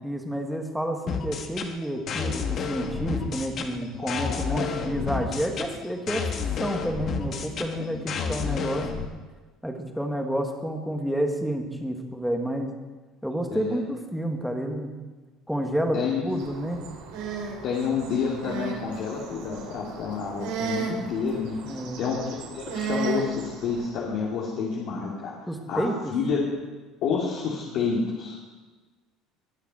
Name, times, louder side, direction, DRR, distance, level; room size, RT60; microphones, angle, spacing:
voice 1, 0.0-6.3 6.6-8.9 9.6-12.7 13.2-14.9 15.5-16.8 21.6-22.0 25.5-26.1, right 1 dB, ahead, 3 dB, 1.7 m, -29 dB
sound 1, 1.1-9.1, left 6 dB, 40° left, 1.4 m, -31 dB
voice 2, 4.0-4.8 7.8-8.9 13.5-13.8 15.9-16.2 17.6-22.2 22.5-25.3 25.7-26.4 27.0-28.4, left 5 dB, 60° left, -4 dB, 2.6 m, -29 dB
sound 2, 16.3-23.9, right 5 dB, 80° right, 3.6 m, -35 dB
20.5 x 7.3 x 6.3 m, 1.3 s
cardioid pair, 145°, 0 cm